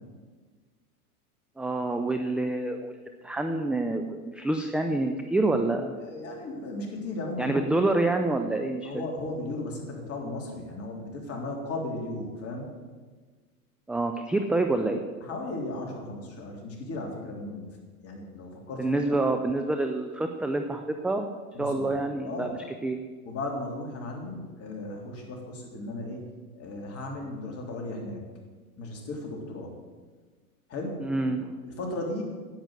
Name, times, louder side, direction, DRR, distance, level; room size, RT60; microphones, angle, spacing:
voice 1, 1.6-5.9 7.4-9.0 13.9-15.0 18.8-21.3 21.6-23.0 31.0-31.5, right 2 dB, ahead, 5 dB, 0.5 m, -27 dB
voice 2, 5.9-7.9 8.8-12.7 15.2-17.7 18.0-19.2 21.5-22.0 22.2-22.5 23.3-26.3 26.6-28.2 28.8-29.7 30.7-31.1 31.6-32.2, left 2 dB, 30° left, 0 dB, 3.6 m, -36 dB
10.5 x 8.9 x 8.0 m, 1.4 s
hypercardioid pair, 110°, 45 cm